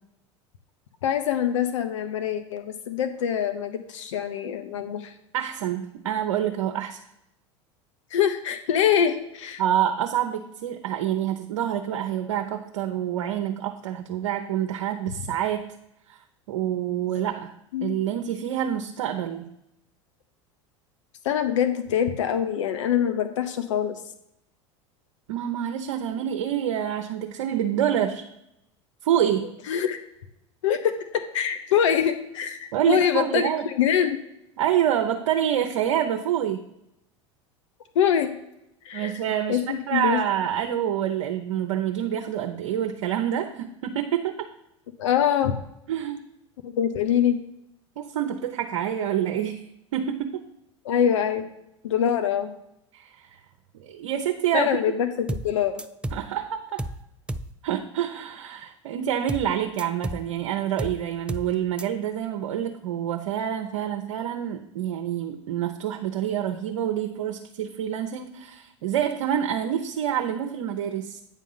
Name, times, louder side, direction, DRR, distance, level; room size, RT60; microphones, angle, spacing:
voice 1, 1.0-5.1 8.1-9.6 17.7-18.0 21.2-23.9 29.7-30.0 30.6-32.6 32.9-34.2 37.9-38.3 38.8-39.2 39.5-40.2 45.0-45.6 46.6-47.4 50.8-51.4 51.8-52.5 54.5-55.8, left 9 dB, 75° left, 9 dB, 0.8 m, -24 dB
voice 2, 5.3-7.0 9.6-15.6 16.1-16.2 16.5-17.5 17.8-19.4 25.3-28.2 29.0-29.5 32.7-33.7 34.6-36.6 38.9-44.5 45.9-46.2 48.0-49.6 49.9-50.4 52.9-53.1 53.8-54.7 56.1-56.8 57.6-71.2, right 10 dB, 75° right, 4 dB, 0.8 m, -27 dB
sound 1, 55.3-55.5 55.8-56.3 56.8-57.0 57.3-57.5 59.3-59.5 59.8-60.3 60.8-61.0 61.3-61.5 61.8-61.9, right 1 dB, 5° right, 0.4 m, -32 dB
9.0 x 3.7 x 5.5 m, 0.82 s
hypercardioid pair, 90°, 16 cm